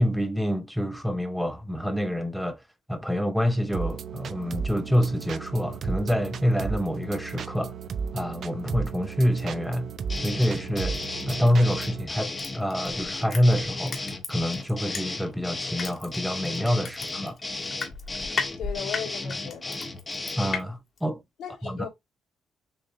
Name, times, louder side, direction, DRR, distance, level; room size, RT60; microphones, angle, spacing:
voice 1, 0.0-2.6 2.9-7.7 8.1-9.9 10.2-11.0 11.3-17.4 20.4-21.2 21.6-21.9, equal, ahead, 0.6 m, -26 dB
sound 1, 3.7-12.1, right 6 dB, 60° right, 0.5 m, -35 dB
sound 2, 10.1-20.6, left 2 dB, 20° left, 1.0 m, -34 dB
Crushing, 12.4-15.4 15.8-20.6 21.0-21.1, left 5 dB, 50° left, 1.5 m, -34 dB
voice 2, 18.6-19.8 21.4-21.9, left 8 dB, 80° left, 2.3 m, -36 dB
6.5 x 2.9 x 2.6 m
cardioid pair, 90°, 0 cm